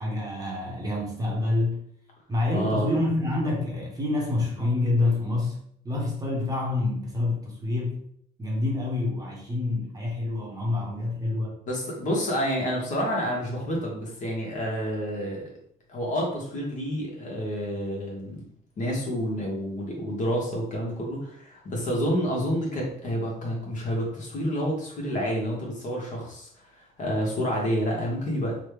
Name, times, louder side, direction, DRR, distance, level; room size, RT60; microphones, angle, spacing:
voice 1, 0.0-1.8 2.3-8.0 8.4-11.6, left 2 dB, 20° right, -2 dB, 0.8 m, -27 dB
voice 2, 2.5-2.9 11.7-15.5 15.9-18.4 18.8-28.6, equal, 50° left, -2 dB, 1.1 m, -29 dB
3.0 x 2.2 x 3.2 m, 0.67 s
cardioid pair, 110°, 17 cm